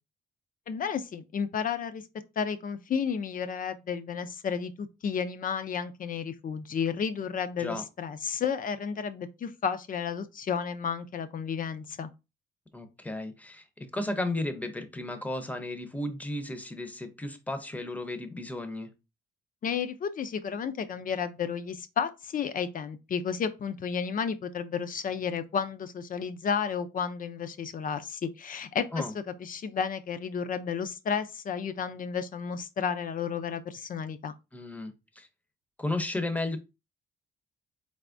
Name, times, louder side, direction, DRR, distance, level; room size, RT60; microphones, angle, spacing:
voice 1, 0.7-2.0 2.4-12.1 19.6-34.3, left 6 dB, 45° left, 0.5 m, -32 dB
voice 2, 12.7-13.6 13.9-18.9 28.9-29.1 34.5-35.3 35.8-36.6, left 2 dB, 5° left, 0.7 m, -34 dB
4.0 x 3.4 x 2.6 m
cardioid pair, 90°, 20 cm